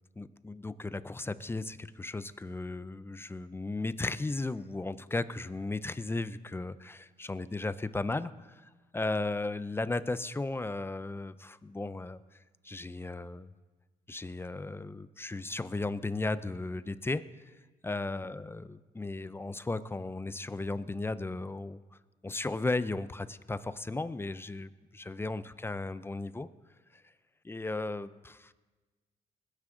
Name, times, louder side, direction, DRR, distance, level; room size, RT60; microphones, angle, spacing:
voice 1, 0.2-12.2 12.6-13.5 14.1-17.2 17.8-21.8 22.2-26.5 26.9-27.0 27.4-28.5, left 2 dB, 15° left, 15 dB, 0.5 m, -35 dB
20.5 x 9.7 x 3.8 m, 1.3 s
cardioid pair, 85°, 15 cm